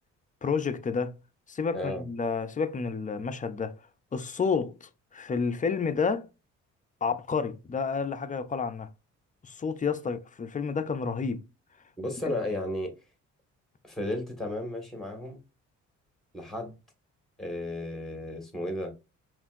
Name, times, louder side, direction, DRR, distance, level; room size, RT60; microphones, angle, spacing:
voice 1, 0.4-1.1 1.5-3.7 4.1-6.3 7.0-8.9 9.4-11.4 12.2-12.3, left 5 dB, 25° left, 0.5 m, -30 dB
voice 2, 1.7-2.0 12.0-12.9 13.8-15.4 16.3-16.8 17.4-18.9, left 1 dB, ahead, 1.6 m, -33 dB
5.4 x 2.6 x 2.5 m
cardioid pair, 90°, 30 cm